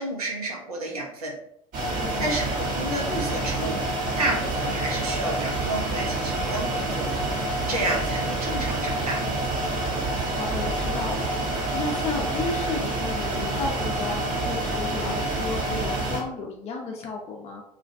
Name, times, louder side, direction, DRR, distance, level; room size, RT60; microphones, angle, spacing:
voice 1, 0.0-1.4 2.2-3.8 4.2-7.2 7.7-9.2, right 2 dB, 85° right, -1 dB, 0.5 m, -30 dB
sound 1, 1.7-16.2, right 2 dB, 40° right, 0.9 m, -27 dB
voice 2, 2.0-2.3 10.3-17.6, left 3 dB, 35° left, 0 dB, 0.6 m, -33 dB
2.2 x 2.2 x 2.5 m, 0.75 s
figure-of-eight pair, 65°, 19 cm